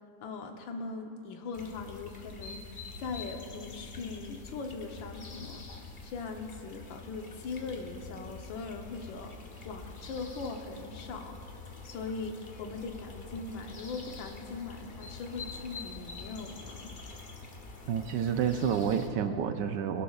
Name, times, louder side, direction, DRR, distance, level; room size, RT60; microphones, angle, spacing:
voice 1, 0.2-5.6 6.0-9.3 9.6-11.4 11.8-16.9, left 4 dB, 85° left, 4 dB, 1.6 m, -40 dB
sound 1, 1.5-19.1, left 4 dB, 40° left, 0.8 m, -46 dB
voice 2, 17.9-20.0, right 7 dB, 75° right, 8 dB, 1.2 m, -29 dB
22.0 x 11.5 x 2.4 m, 2.8 s
omnidirectional pair, 2.0 m